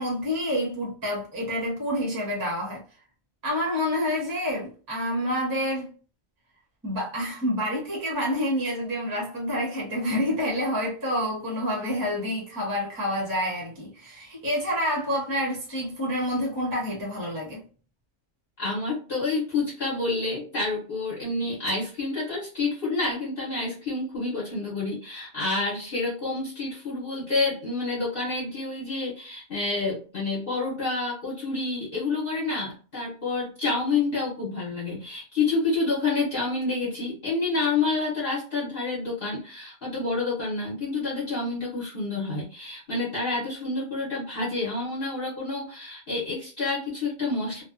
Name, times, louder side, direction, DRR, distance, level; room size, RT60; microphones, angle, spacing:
voice 1, 0.0-2.8 3.4-5.9 6.8-17.6, equal, 20° right, 0.6 m, -28 dB
voice 2, 18.6-47.6, left 3 dB, 50° left, 0.9 m, -28 dB
2.5 x 2.2 x 2.3 m
omnidirectional pair, 1.4 m